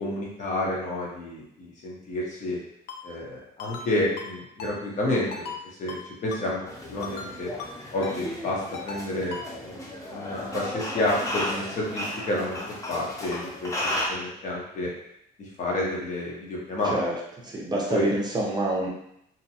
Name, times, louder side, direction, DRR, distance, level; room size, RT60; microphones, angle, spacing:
voice 1, 0.0-2.6 3.0-5.4 5.8-6.6 6.9-7.5 7.9-9.3 9.6-9.7 10.0-13.7 14.1-14.9 15.4-16.9 17.9-18.1, left 1 dB, 45° left, -3 dB, 0.9 m, -30 dB
Ringtone, 2.9-3.0 3.6-3.9 4.2-4.3 4.6-4.7 5.3-5.6 5.9-6.0 6.3-6.4 7.0-7.3 7.6-7.7 8.0-8.2 8.7-9.0 9.3-9.4, left 5 dB, 75° left, 0.5 m, -37 dB
sound 1, 6.7-14.1, left 1 dB, 20° left, 0.6 m, -34 dB
voice 2, 16.8-17.1 17.4-18.9, right 1 dB, 25° right, -3 dB, 0.6 m, -26 dB
2.7 x 2.2 x 2.7 m, 0.75 s
cardioid pair, 110°, 17 cm